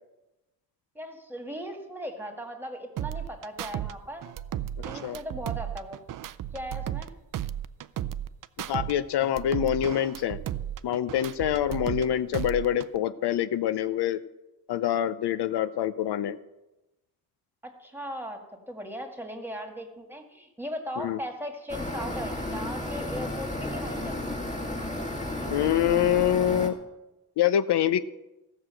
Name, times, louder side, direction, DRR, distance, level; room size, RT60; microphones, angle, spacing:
voice 1, 1.0-4.3 4.8-6.0 6.5-7.1 17.6-18.4 18.7-24.4, equal, 5° right, 3 dB, 1.9 m, -38 dB
sound 1, 3.0-3.9 4.2-7.1 7.3-8.9 9.2-12.0 12.3-13.0, right 11 dB, 50° right, 0.5 m, -34 dB
voice 2, 8.7-10.4 10.8-14.2 14.7-16.4 21.0-21.2 25.4-26.7 27.4-28.0, left 10 dB, 75° left, 12 dB, 0.6 m, -25 dB
sound 2, 21.7-26.7, left 1 dB, 20° left, 1.9 m, -33 dB
15.0 x 6.4 x 7.6 m, 0.99 s
cardioid pair, 125°, 41 cm